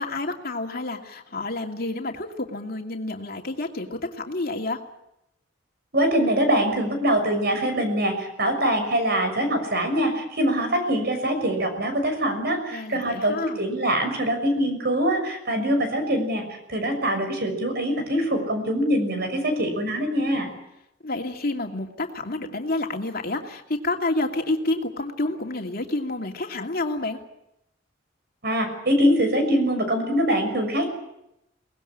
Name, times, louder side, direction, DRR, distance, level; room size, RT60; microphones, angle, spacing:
voice 1, 0.0-4.8 12.7-13.6 21.0-27.2, left 2 dB, 55° left, 3 dB, 2.6 m, -29 dB
voice 2, 5.9-20.5 28.4-30.9, equal, 60° right, 6 dB, 6.4 m, -23 dB
23.5 x 19.5 x 8.9 m, 0.84 s
head